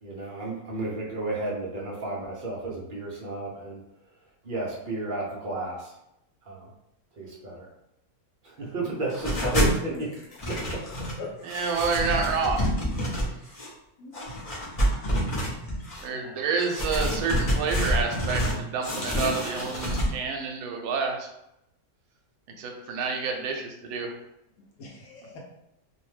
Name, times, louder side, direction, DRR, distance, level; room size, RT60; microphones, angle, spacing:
voice 1, 0.0-3.8 4.4-6.0 6.4-6.7 7.1-7.7 8.4-10.1 10.5-10.8, right 2 dB, 55° right, -4 dB, 0.5 m, -32 dB
sound 1, 9.1-9.8 10.1-11.2 11.5-13.7 14.1-16.0 16.6-18.6 18.8-20.1, equal, 50° left, 0.4 m, -27 dB
voice 2, 11.4-12.6 16.0-21.3 22.6-24.1, right 5 dB, 75° right, 2 dB, 1.0 m, -28 dB
voice 3, 14.0-14.5 16.1-16.6 24.8-25.4, left 3 dB, 75° left, -2 dB, 1.0 m, -43 dB
2.7 x 2.1 x 3.1 m, 0.84 s
omnidirectional pair, 1.6 m